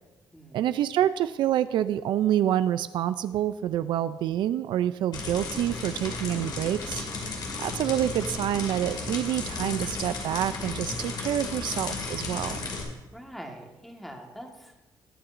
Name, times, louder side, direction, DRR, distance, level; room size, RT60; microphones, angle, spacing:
voice 1, 0.5-7.0 7.6-12.6, right 11 dB, 75° right, 13 dB, 0.4 m, -27 dB
sound 1, 5.1-12.8, left 3 dB, 65° left, 2.4 m, -34 dB
voice 2, 13.1-14.9, equal, ahead, 2 dB, 1.5 m, -43 dB
21.0 x 7.7 x 2.5 m, 1.1 s
cardioid pair, 125°, 8 cm